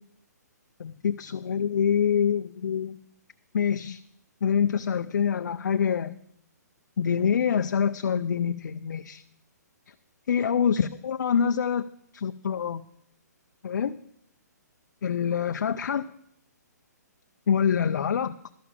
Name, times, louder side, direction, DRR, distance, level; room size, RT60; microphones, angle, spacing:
voice 1, 0.8-3.0 3.5-4.0 4.4-6.1 7.0-9.2 10.3-11.8 12.1-12.8 13.6-14.0 15.0-16.1 17.5-18.4, left 7 dB, 75° left, 9 dB, 0.4 m, -25 dB
12.0 x 6.0 x 7.2 m, 0.73 s
hypercardioid pair, 160°, 10 cm